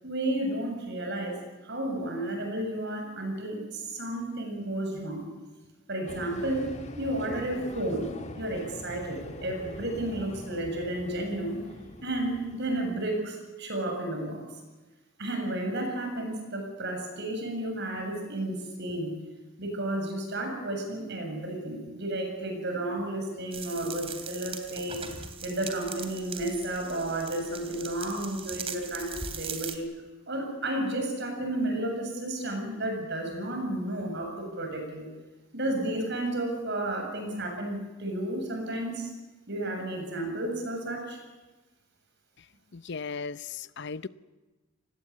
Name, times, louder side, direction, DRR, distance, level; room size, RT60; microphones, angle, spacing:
voice 1, 0.0-5.3 5.9-8.1 8.4-11.8 12.0-14.6 15.2-19.1 19.6-25.0 25.4-29.9 30.3-35.1 35.5-39.1 39.5-41.2, right 1 dB, 50° right, 7.6 m, -32 dB
sound 1, 6.1-13.2, left 1 dB, 30° left, 1.8 m, -43 dB
sound 2, 23.5-29.8, right 6 dB, 25° right, 2.7 m, -40 dB
voice 2, 42.7-44.1, left 5 dB, 50° left, 0.7 m, -36 dB
29.0 x 20.0 x 8.6 m
head